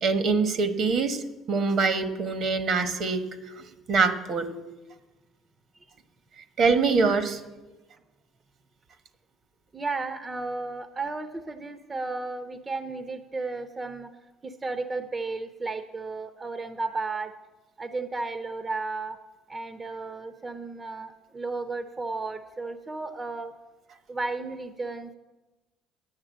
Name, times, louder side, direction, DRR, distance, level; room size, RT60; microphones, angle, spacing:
voice 1, 0.0-1.2 1.5-4.5 6.6-7.4, right 4 dB, 60° right, 9 dB, 1.3 m, -24 dB
voice 2, 9.7-14.1 14.4-17.3 17.8-19.2 19.5-23.5 24.1-25.1, right 3 dB, 30° right, 9 dB, 0.8 m, -33 dB
9.8 x 8.8 x 7.4 m, 1.1 s
supercardioid pair, 70°, 0 cm